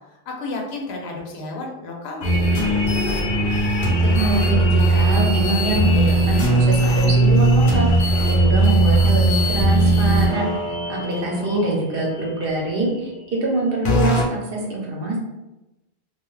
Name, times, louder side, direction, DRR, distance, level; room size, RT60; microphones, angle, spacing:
voice 1, 0.1-2.7 11.0-11.8, left 3 dB, 90° left, 0 dB, 0.9 m, -31 dB
sound 1, 2.2-12.9 13.9-14.2, right 1 dB, 60° left, 0.7 m, -19 dB
voice 2, 4.2-10.5 10.9-15.2, right 2 dB, 65° right, -2 dB, 0.9 m, -24 dB
2.3 x 2.2 x 3.0 m, 0.98 s
omnidirectional pair, 1.0 m